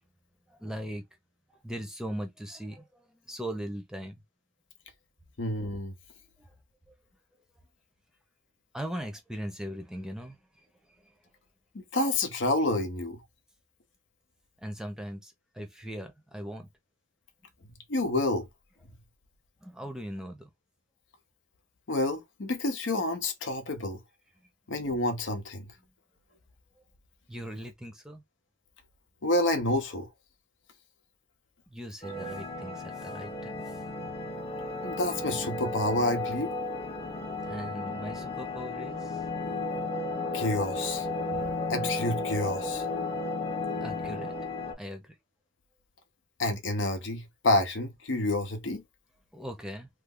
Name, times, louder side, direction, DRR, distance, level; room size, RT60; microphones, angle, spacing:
voice 1, 0.5-1.0 1.6-2.8 3.3-4.1 8.7-10.4 14.6-16.7 19.6-20.5 27.3-28.2 31.7-33.5 37.4-39.2 43.8-44.3 44.8-45.0 49.3-49.9, equal, 5° right, 0.7 m, -39 dB
voice 2, 5.4-5.9 11.7-13.2 17.9-18.5 21.9-24.0 24.7-25.7 29.2-30.1 34.8-36.5 40.3-41.1 41.7-42.9 46.4-48.8, left 2 dB, 80° left, 0.8 m, -28 dB
sound 1, 32.0-44.7, left 2 dB, 30° left, 0.7 m, -34 dB
3.1 x 2.0 x 3.6 m
head